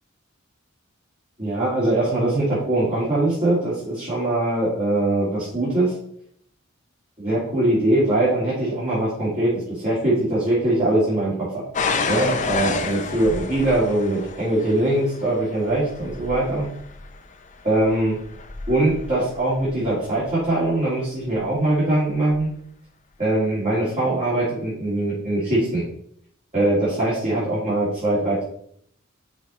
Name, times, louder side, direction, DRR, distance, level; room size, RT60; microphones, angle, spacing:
voice 1, 1.4-5.9 7.2-11.6 12.1-16.7 17.6-18.2 18.7-22.5 23.2-25.8 26.5-28.4, right 1 dB, 30° right, -10 dB, 2.8 m, -22 dB
sound 1, 11.7-20.5 21.3-21.7 22.3-22.4, left 4 dB, 35° left, 0.6 m, -30 dB
6.3 x 4.8 x 4.4 m, 0.67 s
head